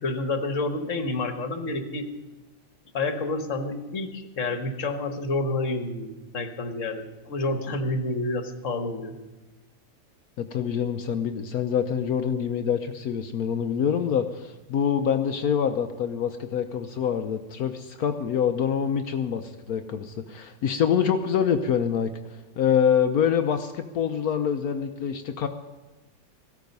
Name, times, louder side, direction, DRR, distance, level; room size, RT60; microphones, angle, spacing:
voice 1, 0.0-2.0 2.9-9.2, left 2 dB, 50° left, 8 dB, 1.6 m, -29 dB
voice 2, 10.4-22.1 22.6-25.5, left 8 dB, 65° left, 7 dB, 1.1 m, -25 dB
16.0 x 13.0 x 5.3 m, 1.1 s
omnidirectional pair, 1.8 m